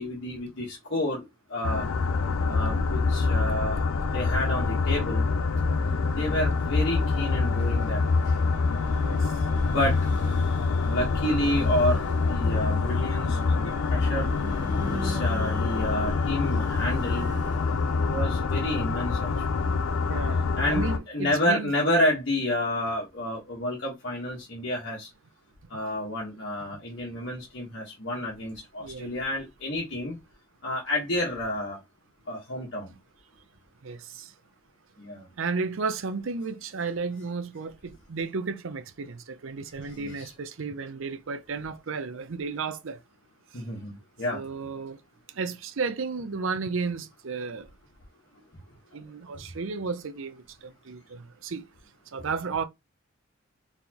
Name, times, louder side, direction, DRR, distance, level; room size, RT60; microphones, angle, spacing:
voice 1, 0.0-1.9 2.5-5.3 6.1-8.4 9.7-10.0 10.8-14.3 14.8-17.3 18.1-19.7 20.6-25.1 25.7-30.2 30.6-31.8 32.3-32.9 35.0-35.3 39.8-40.3 43.5-44.4, left 1 dB, 55° left, 1.2 m, -30 dB
sound 1, 1.6-21.0, left 4 dB, 80° left, 0.5 m, -26 dB
sound 2, 5.3-20.2, equal, 20° right, 1.2 m, -42 dB
voice 2, 9.0-9.3 18.0-18.2 20.1-21.7 28.8-29.1 33.8-34.3 35.4-43.0 44.3-45.0 45.3-47.7 48.9-51.7 52.1-52.6, right 4 dB, 65° right, 0.5 m, -33 dB
4.1 x 3.5 x 2.9 m
head